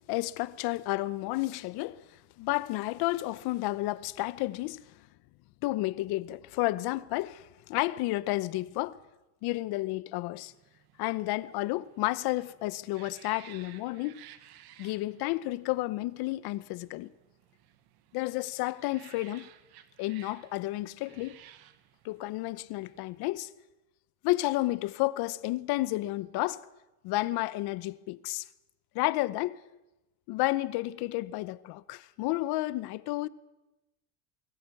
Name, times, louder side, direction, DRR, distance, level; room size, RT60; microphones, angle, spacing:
voice 1, 0.1-2.0 2.4-4.8 5.6-9.0 9.4-10.5 11.0-14.2 14.8-17.1 18.1-19.5 20.0-21.4 22.0-23.5 24.2-26.6 27.0-28.5 28.9-29.6 30.3-33.3, left 18 dB, 75° left, 0.9 m, -31 dB
sound 1, 10.5-23.2, right 12 dB, 70° right, 1.4 m, -57 dB
23.5 x 13.5 x 8.4 m
cardioid pair, 125°, 39 cm